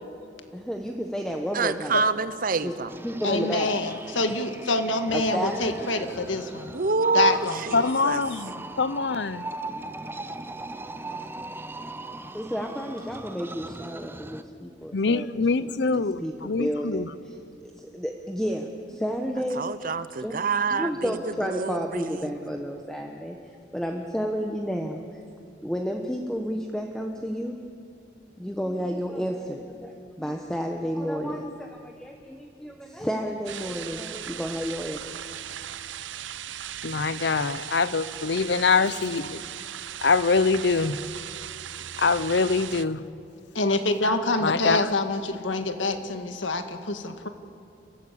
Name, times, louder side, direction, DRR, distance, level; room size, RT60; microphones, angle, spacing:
voice 1, 0.5-2.1 2.6-2.7 3.0-3.8 5.1-5.9 12.3-15.3 15.6-19.7 20.2-20.3 20.7-23.4 23.7-25.0 25.6-27.6 28.4-35.1, equal, 5° left, 2 dB, 1.1 m, -31 dB
voice 2, 1.5-2.9 6.7-8.2 19.5-22.5, right 4 dB, 50° right, 14 dB, 0.8 m, -27 dB
sound 1, 2.9-14.4, right 2 dB, 10° right, 0.6 m, -39 dB
voice 3, 3.2-6.7 7.1-7.8 43.6-47.3, left 2 dB, 85° left, 7 dB, 1.6 m, -26 dB
voice 4, 7.7-9.5 14.9-17.1 36.8-39.4 40.0-41.0 42.0-43.0 44.4-44.9, left 4 dB, 60° left, 16 dB, 0.7 m, -24 dB
sound 2, 33.5-42.9, right 10 dB, 80° right, 0.7 m, -38 dB
29.5 x 13.5 x 8.5 m, 2.6 s
head